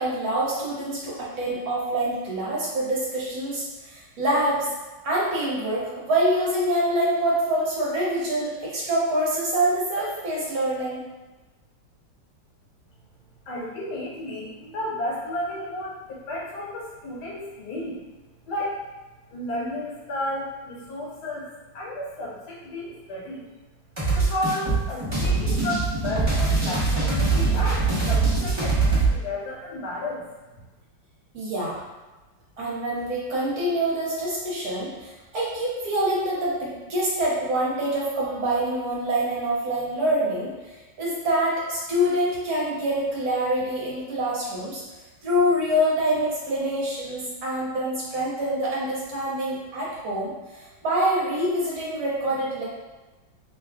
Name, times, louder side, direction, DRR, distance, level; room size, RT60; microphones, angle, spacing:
voice 1, 0.0-4.7 5.0-11.0 31.3-31.8 32.6-40.5 41.0-44.8 45.2-52.6, right 1 dB, 55° right, -6 dB, 1.2 m, -25 dB
voice 2, 13.5-18.0 18.4-18.8 19.3-23.4 24.1-30.3 30.5-30.6, left 1 dB, 65° left, -5 dB, 1.4 m, -32 dB
sound 1, 24.0-29.1, right 3 dB, 35° right, 0.4 m, -22 dB
3.2 x 2.3 x 3.5 m, 1.2 s
omnidirectional pair, 2.1 m